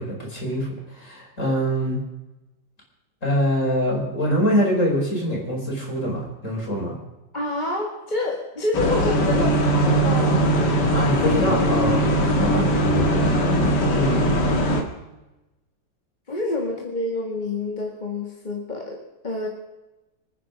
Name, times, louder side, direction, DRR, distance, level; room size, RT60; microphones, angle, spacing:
voice 1, 0.0-2.0 3.2-7.0 10.9-12.7 13.9-14.3, equal, 40° left, -1 dB, 5.2 m, -24 dB
voice 2, 7.3-10.5 13.1-14.1 14.6-14.7 16.3-19.5, left 2 dB, 25° left, 0 dB, 1.8 m, -28 dB
sound 1, 8.7-14.8, equal, 65° left, 2.5 m, -20 dB
25.5 x 9.6 x 5.2 m, 1.0 s
omnidirectional pair, 2.0 m